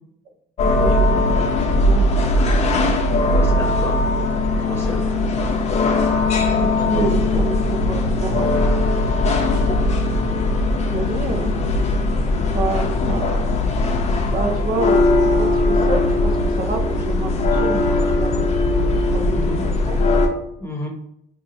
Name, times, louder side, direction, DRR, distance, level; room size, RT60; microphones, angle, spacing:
sound 1, 0.6-20.3, left 2 dB, 40° left, 0.5 m, -19 dB
voice 1, 0.8-2.3 5.3-5.4 6.6-8.5 9.5-9.8 10.9-11.5 12.0-13.5 14.3-20.0, right 4 dB, 55° right, 4 dB, 0.5 m, -28 dB
voice 2, 3.3-4.1 4.5-5.3 6.9-7.1 19.3-19.6 20.6-20.9, left 1 dB, 15° left, 0 dB, 0.8 m, -30 dB
2.7 x 2.3 x 4.0 m, 0.76 s
cardioid pair, 110°, 17 cm